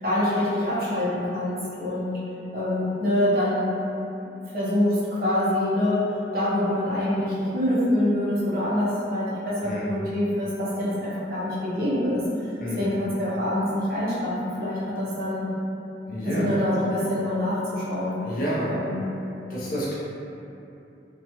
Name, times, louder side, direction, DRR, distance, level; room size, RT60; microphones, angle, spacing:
voice 1, 0.0-2.2 2.5-3.7 4.5-6.0 6.3-12.2 12.8-15.5 16.2-18.2 18.7-19.1, left 1 dB, 50° right, -9 dB, 0.7 m, -25 dB
voice 2, 16.1-16.5 18.2-18.7 19.5-19.9, equal, 50° left, -8 dB, 0.6 m, -29 dB
2.9 x 2.3 x 2.8 m, 2.8 s
head